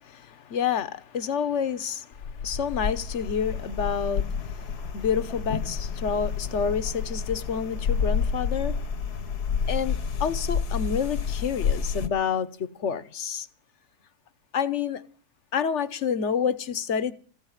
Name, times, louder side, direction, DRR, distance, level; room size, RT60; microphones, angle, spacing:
voice 1, 0.0-8.8 9.7-13.5 14.5-15.0 15.5-17.1, left 7 dB, 50° left, 1.1 m, -29 dB
sound 1, 2.1-12.1, left 6 dB, 70° left, 1.7 m, -29 dB
15.0 x 9.0 x 9.6 m
omnidirectional pair, 1.8 m